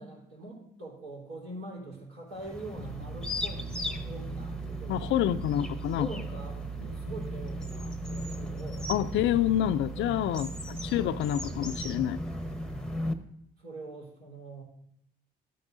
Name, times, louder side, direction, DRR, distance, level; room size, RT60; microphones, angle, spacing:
voice 1, 0.0-5.1 5.9-8.9 9.9-10.2 13.6-14.6, right 2 dB, 85° right, -5 dB, 4.0 m, -43 dB
sound 1, 2.3-13.1, left 1 dB, 5° left, 0.9 m, -37 dB
sound 2, 2.7-13.2, right 7 dB, 55° right, 1.1 m, -41 dB
voice 2, 4.9-6.1 8.9-12.2, left 11 dB, 65° left, 15 dB, 0.4 m, -28 dB
13.0 x 9.3 x 2.6 m, 0.73 s
hypercardioid pair, 50°, 21 cm